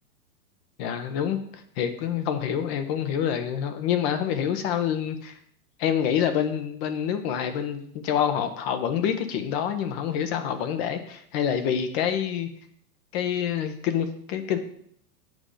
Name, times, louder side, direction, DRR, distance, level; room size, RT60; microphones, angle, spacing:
voice 1, 0.8-1.4 1.8-5.3 5.8-12.5 13.1-14.6, left 8 dB, 40° left, 8 dB, 1.3 m, -27 dB
8.0 x 5.1 x 5.8 m, 0.64 s
hypercardioid pair, 120°, 47 cm